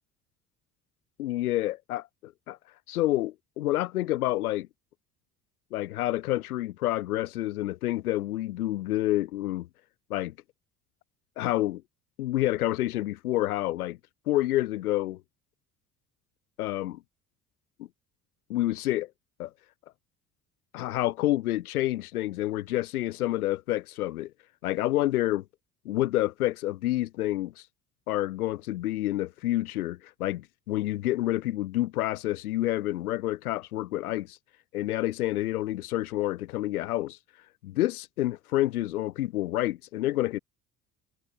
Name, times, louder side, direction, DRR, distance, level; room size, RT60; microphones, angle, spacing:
voice 1, 1.2-2.6 2.9-4.7 5.7-9.7 10.1-10.3 11.4-11.8 12.2-14.0 14.3-15.2 16.6-17.0 18.5-19.1 19.4-19.5 20.7-24.3 24.6-25.4 25.9-27.6 28.1-34.4 34.7-37.2 37.6-40.4, left 15 dB, 80° left, 0.9 m, -28 dB
figure-of-eight pair, 55°, 44 cm